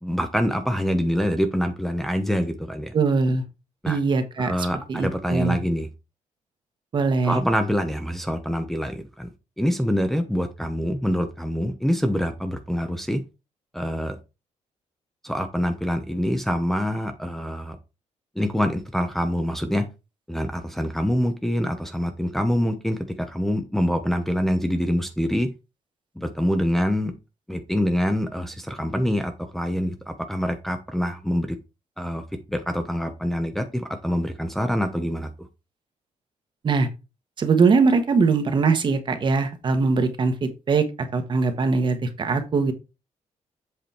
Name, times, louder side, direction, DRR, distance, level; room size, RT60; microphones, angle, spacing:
voice 1, 0.0-2.9 3.8-4.0 4.4-5.9 7.2-9.3 9.6-13.2 13.7-14.2 15.2-17.8 18.4-19.8 20.3-25.5 26.2-27.1 27.5-31.5 32.0-32.2 32.5-35.5, equal, ahead, 5 dB, 0.8 m, -25 dB
voice 2, 2.9-3.4 3.9-4.5 4.9-5.6 6.9-7.4 36.6-36.9 37.4-40.8 41.1-42.7, right 4 dB, 40° right, 8 dB, 1.4 m, -21 dB
7.9 x 5.0 x 4.4 m, 0.28 s
cardioid pair, 145°, 13 cm